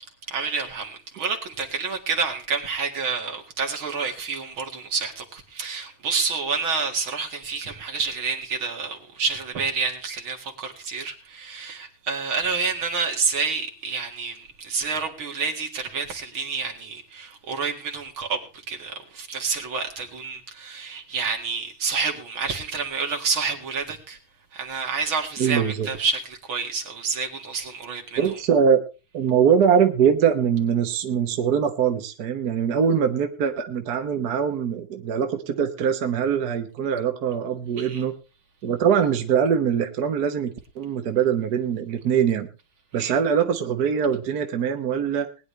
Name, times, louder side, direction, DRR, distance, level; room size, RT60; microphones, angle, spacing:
voice 1, 0.3-18.4 18.7-24.2 24.5-28.2 37.8-38.0 43.0-43.1, right 5 dB, 80° right, 2.8 m, -28 dB
voice 2, 25.4-25.9 28.2-28.8 29.1-38.1 38.6-42.5 42.9-45.3, right 7 dB, 55° right, 1.5 m, -22 dB
20.0 x 10.0 x 3.2 m
omnidirectional pair, 2.2 m